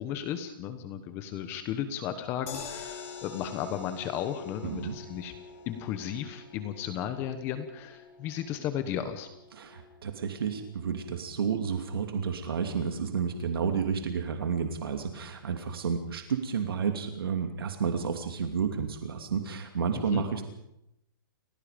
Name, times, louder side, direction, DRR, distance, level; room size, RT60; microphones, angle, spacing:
voice 1, 0.0-5.3 5.7-9.3 20.0-20.2, left 9 dB, 20° left, 9 dB, 1.1 m, -34 dB
sound 1, 2.5-14.7 15.1-15.2 15.5-15.6, left 6 dB, 40° left, 5.7 m, -48 dB
voice 2, 4.6-5.0 9.5-20.4, right 6 dB, 75° right, 5 dB, 2.8 m, -31 dB
30.0 x 17.0 x 5.2 m, 0.83 s
hypercardioid pair, 170°, 12 cm